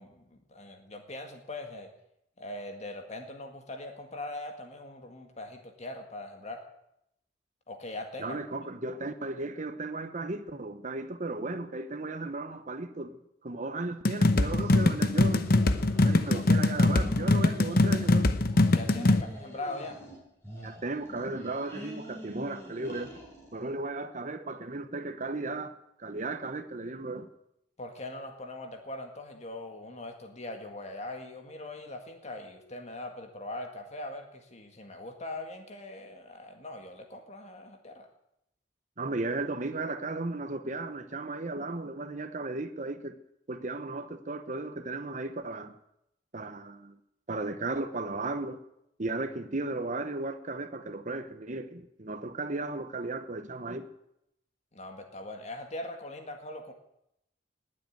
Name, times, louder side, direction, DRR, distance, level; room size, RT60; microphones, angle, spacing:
voice 1, 0.0-1.9 2.4-6.6 7.7-8.4 16.3-16.4 18.7-20.0 27.8-38.1 54.7-56.7, left 2 dB, 40° left, 1.9 m, -41 dB
voice 2, 8.2-15.5 16.0-18.3 20.6-23.1 23.5-25.7 26.0-27.3 39.0-43.2 43.5-45.8 46.3-47.0 47.3-48.6 49.0-53.9, right 2 dB, 45° right, 1.0 m, -35 dB
sound 1, 14.0-19.2, left 2 dB, 55° left, 1.0 m, -23 dB
sound 2, 14.4-16.4 16.7-18.2 18.4-20.2 20.4-23.6, equal, 15° left, 5.6 m, -44 dB
19.5 x 7.9 x 9.3 m
head